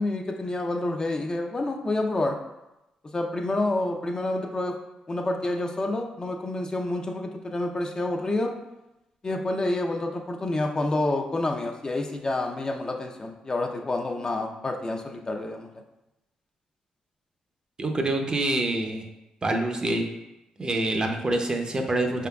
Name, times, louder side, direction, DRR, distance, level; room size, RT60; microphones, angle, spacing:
voice 1, 0.0-2.4 3.1-4.8 5.1-8.5 9.2-15.7, left 2 dB, 30° left, 3 dB, 0.5 m, -28 dB
voice 2, 17.8-19.1 19.4-20.1 20.6-22.3, right 2 dB, 35° right, 3 dB, 0.6 m, -26 dB
4.9 x 3.7 x 2.3 m, 0.94 s
cardioid pair, 70°, 2 cm